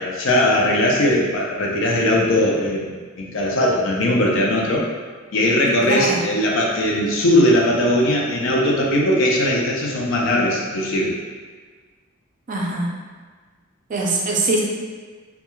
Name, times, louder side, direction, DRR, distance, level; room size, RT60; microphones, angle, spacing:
voice 1, 0.0-4.9 5.3-11.1, left 1 dB, 65° left, -2 dB, 0.5 m, -19 dB
voice 2, 5.9-6.2 12.5-12.9 13.9-14.6, right 2 dB, 40° right, -2 dB, 0.4 m, -22 dB
2.2 x 2.2 x 2.9 m, 1.5 s
head